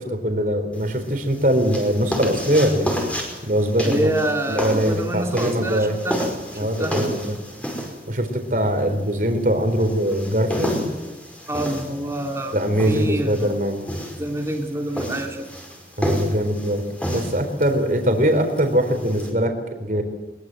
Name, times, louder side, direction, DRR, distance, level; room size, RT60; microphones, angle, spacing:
voice 1, 0.1-3.0 3.4-4.1 4.5-6.0 6.6-7.2 8.1-10.8 12.5-13.8 16.0-19.5 19.8-20.0, equal, 50° right, 6 dB, 4.3 m, -22 dB
sound 1, 0.7-19.3, equal, 5° left, 5.2 m, -31 dB
voice 2, 3.8-6.2 6.5-7.0 11.5-12.6 12.9-13.6 14.2-15.5, right 1 dB, 15° right, 2 dB, 2.8 m, -26 dB
23.0 x 22.0 x 7.9 m, 1.2 s
head